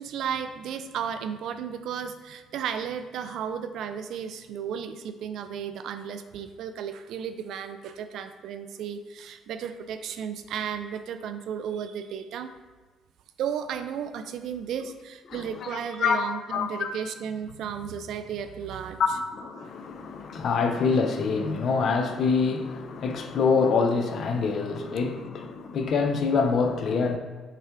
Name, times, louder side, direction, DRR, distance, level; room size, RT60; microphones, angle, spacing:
voice 1, 0.0-12.5 13.4-19.0, right 8 dB, 70° right, 9 dB, 0.3 m, -34 dB
voice 2, 15.3-16.9 19.0-27.2, left 5 dB, 60° left, 6 dB, 0.5 m, -26 dB
5.6 x 2.2 x 3.6 m, 1.4 s
supercardioid pair, 80°, 0 cm